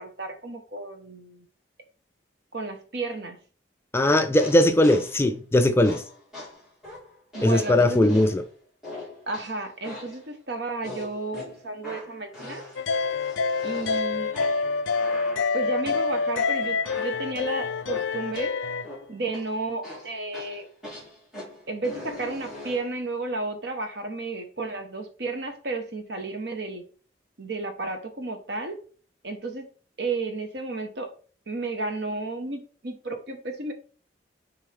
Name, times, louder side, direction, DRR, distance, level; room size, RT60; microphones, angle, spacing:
voice 1, 0.0-1.5 2.5-3.4 7.3-8.2 9.3-12.6 13.6-14.6 15.5-18.5 19.1-20.6 21.7-26.8 27.4-28.8 29.2-29.7 30.0-31.1 31.5-33.7, right 3 dB, 60° right, 1.1 m, -32 dB
voice 2, 3.9-6.0 7.4-8.4, left 1 dB, 15° left, 0.3 m, -20 dB
sound 1, 4.3-5.2 5.8-8.5 8.8-10.3 10.8-18.5 18.8-19.5 19.8-22.9, left 1 dB, 5° right, 2.9 m, -41 dB
sound 2, 12.8-18.9, left 4 dB, 90° left, 0.4 m, -27 dB
6.5 x 4.6 x 3.4 m
head